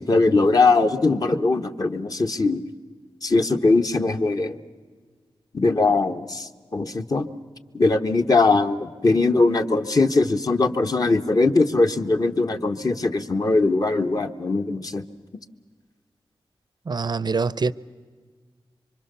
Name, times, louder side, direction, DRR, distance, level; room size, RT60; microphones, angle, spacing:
voice 1, 0.0-2.6 3.2-4.6 5.5-7.3 7.7-15.0, left 3 dB, 40° left, 1.1 m, -21 dB
voice 2, 16.9-17.7, right 4 dB, 50° right, 0.6 m, -24 dB
26.0 x 24.0 x 6.9 m
wide cardioid pair, 70°, 9 cm